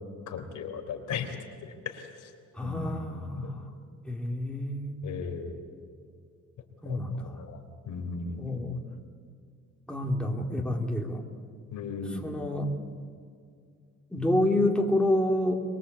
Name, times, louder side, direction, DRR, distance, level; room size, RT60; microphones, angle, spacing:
voice 1, 0.3-1.3 1.6-2.1 2.6-3.5 5.0-5.6 6.8-7.1 7.4-8.6 11.7-12.3, left 5 dB, 70° left, 4 dB, 3.7 m, -36 dB
voice 2, 2.5-3.6 4.0-4.9 6.8-7.4 8.4-8.8 9.9-11.2 12.1-12.7 14.1-15.6, left 1 dB, 5° left, 0 dB, 3.3 m, -28 dB
24.0 x 22.0 x 8.4 m, 2.2 s
cardioid pair, 90°, 30 cm